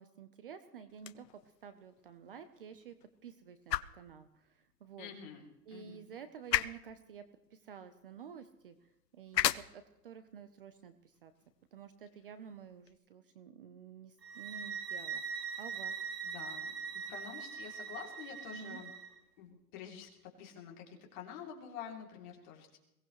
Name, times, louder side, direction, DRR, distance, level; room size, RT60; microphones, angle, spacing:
voice 1, 0.0-3.0 3.2-5.1 5.7-11.3 11.7-16.0 18.5-18.8, right 7 dB, 35° right, 11 dB, 0.8 m, -51 dB
sound 1, 0.9-13.0, left 11 dB, 80° left, 0.8 m, -40 dB
voice 2, 5.0-6.0 16.2-18.9 19.4-22.8, left 8 dB, 30° left, 0 dB, 3.0 m, -48 dB
sound 2, 14.2-19.1, right 6 dB, 85° right, 7.2 m, -42 dB
22.0 x 17.5 x 3.2 m, 0.88 s
hypercardioid pair, 160°, 49 cm